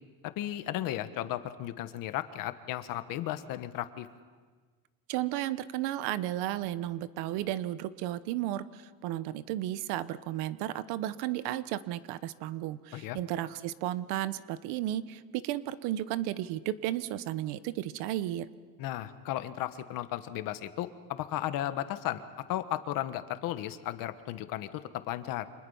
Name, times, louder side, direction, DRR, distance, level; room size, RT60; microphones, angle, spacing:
voice 1, 0.4-4.1 12.9-13.2 18.8-22.2 22.5-25.5, left 13 dB, 55° left, 10 dB, 1.4 m, -35 dB
voice 2, 5.1-18.5, right 13 dB, 75° right, 15 dB, 1.1 m, -33 dB
29.5 x 26.5 x 5.6 m, 1.5 s
cardioid pair, 175°, 39 cm